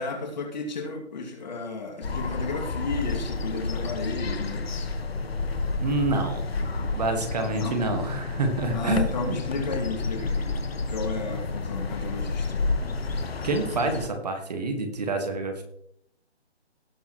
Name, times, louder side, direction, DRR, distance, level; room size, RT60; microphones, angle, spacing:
voice 1, 0.0-4.9 7.5-7.8 8.7-10.6 10.9-12.7, left 3 dB, 40° left, 2 dB, 2.4 m, -33 dB
sound 1, 2.0-14.1, left 3 dB, 60° left, 1.5 m, -30 dB
voice 2, 5.8-9.4 13.4-15.6, right 3 dB, 35° right, 5 dB, 1.8 m, -28 dB
18.0 x 6.9 x 3.1 m, 0.72 s
hypercardioid pair, 165°, 33 cm